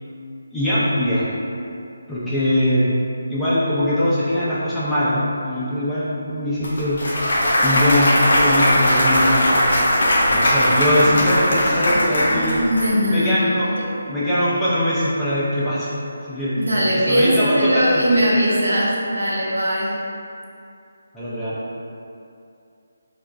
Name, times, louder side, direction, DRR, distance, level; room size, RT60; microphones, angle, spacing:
voice 1, 0.5-1.3 2.1-2.9 3.3-7.0 7.6-9.5 10.3-12.6 13.1-13.7 14.1-15.9 16.3-16.6 16.9-18.0 21.1-21.6, left 1 dB, 5° left, -12 dB, 0.5 m, -21 dB
Clapping / Cheering / Applause, 6.6-12.9, equal, 65° left, 0.7 m, -19 dB
voice 2, 11.8-13.9 16.6-19.9, equal, 85° right, -5 dB, 0.8 m, -20 dB
2.4 x 2.2 x 3.9 m, 2.6 s
figure-of-eight pair, 160°, 0 cm